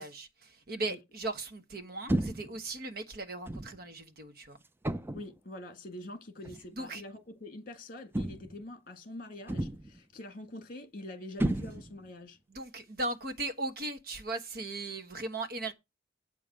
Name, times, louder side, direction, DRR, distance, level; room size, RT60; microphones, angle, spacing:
voice 1, 0.0-4.6 6.8-7.0 12.5-15.7, right 2 dB, 55° right, 1.3 m, -38 dB
sound 1, 2.1-2.6 3.5-3.8 4.8-5.3 6.5-6.7 8.1-8.6 9.5-10.0 11.4-12.1, right 1 dB, 10° right, 0.5 m, -32 dB
voice 2, 5.1-12.4, left 1 dB, 50° left, 1.9 m, -45 dB
8.3 x 5.2 x 7.4 m
head